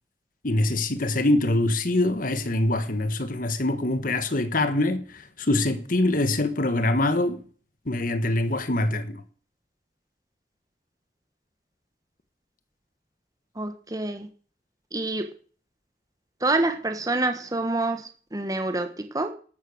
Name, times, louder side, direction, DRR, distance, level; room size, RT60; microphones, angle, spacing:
voice 1, 0.4-7.4 7.9-9.2, left 2 dB, 50° left, 1.4 m, -24 dB
voice 2, 13.6-14.3 14.9-15.3 16.4-19.3, right 2 dB, 20° right, 1.3 m, -27 dB
12.5 x 12.5 x 6.4 m
head